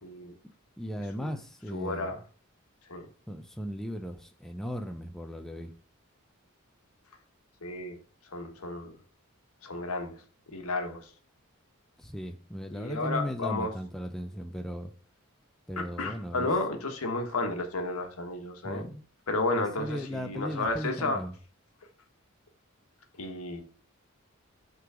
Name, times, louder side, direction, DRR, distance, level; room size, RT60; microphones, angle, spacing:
voice 1, 0.0-0.3 1.2-1.3 1.7-2.2 2.9-3.0 7.6-8.0 8.3-9.0 9.6-10.2 10.5-11.1 12.7-13.7 15.8-18.9 19.3-21.2 23.2-23.6, left 2 dB, 80° left, 5 dB, 1.3 m, -32 dB
voice 2, 0.8-2.2 3.3-5.7 12.0-14.9 15.7-16.5 18.6-19.0 19.8-21.3, equal, ahead, 5 dB, 0.4 m, -37 dB
5.7 x 3.9 x 4.9 m, 0.41 s
head